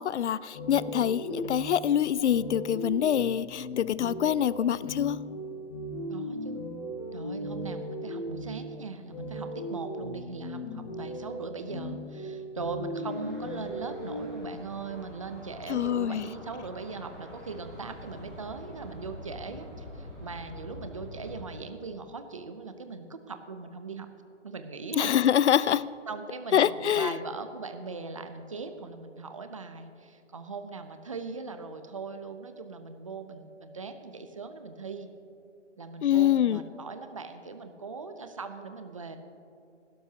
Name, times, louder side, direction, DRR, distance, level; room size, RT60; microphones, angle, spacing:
voice 1, 0.0-5.2 15.7-16.3 25.0-25.9 26.5-27.1 36.0-36.6, left 10 dB, 70° left, 19 dB, 0.5 m, -25 dB
sound 1, 0.5-14.3, equal, 35° left, 1.6 m, -38 dB
voice 2, 6.1-6.6 7.1-24.1 24.4-25.1 25.6-25.8 26.1-35.1 35.8-39.2, right 4 dB, 30° right, 8 dB, 0.6 m, -40 dB
sound 2, 13.0-21.5, left 1 dB, ahead, 1.7 m, -46 dB
19.0 x 12.5 x 2.8 m, 2.7 s
hypercardioid pair, 170°, 35 cm